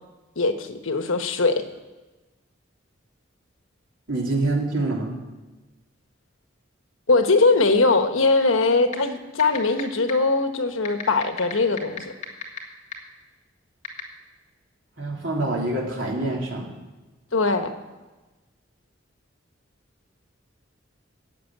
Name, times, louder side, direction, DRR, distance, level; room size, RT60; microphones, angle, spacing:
voice 1, 0.4-1.6 7.1-12.0 17.3-17.7, left 3 dB, 90° left, 8 dB, 1.2 m, -21 dB
voice 2, 4.1-5.1 15.0-16.7, right 2 dB, 75° right, -2 dB, 3.2 m, -26 dB
sound 1, 8.9-9.0 9.4-9.8 10.1-10.2 10.8-12.6 12.9-13.0 13.8-14.0, left 8 dB, 35° left, 1.7 m, -30 dB
13.5 x 7.6 x 9.2 m, 1.2 s
head